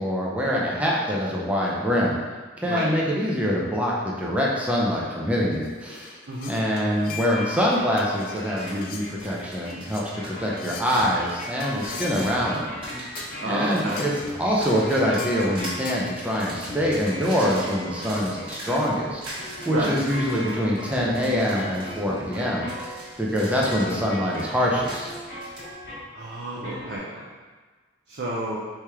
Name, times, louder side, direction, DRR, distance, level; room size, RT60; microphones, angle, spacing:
voice 1, 0.0-2.2 2.6-6.2 6.5-12.8 13.5-14.1 14.4-19.2 19.7-22.7 23.2-25.1, equal, 5° right, -4 dB, 0.6 m, -24 dB
sound 1, 5.5-7.6 8.0-8.4 8.8-9.1 9.7-10.1 10.6-10.9 11.6-12.4 13.1-13.3 14.0-14.3 15.2-15.5 15.8-16.1, left 6 dB, 45° left, 0.4 m, -39 dB
sound 2, 7.3-26.2 26.6-27.0, equal, 75° left, 1.5 m, -38 dB
sound 3, 7.7-7.8 8.1-25.6, right 1 dB, 25° right, 1.2 m, -41 dB
voice 2, 13.4-14.0 19.7-19.9 26.1-27.3 28.1-28.6, right 1 dB, 55° right, -5 dB, 0.6 m, -30 dB
4.4 x 3.2 x 3.5 m, 1.4 s
head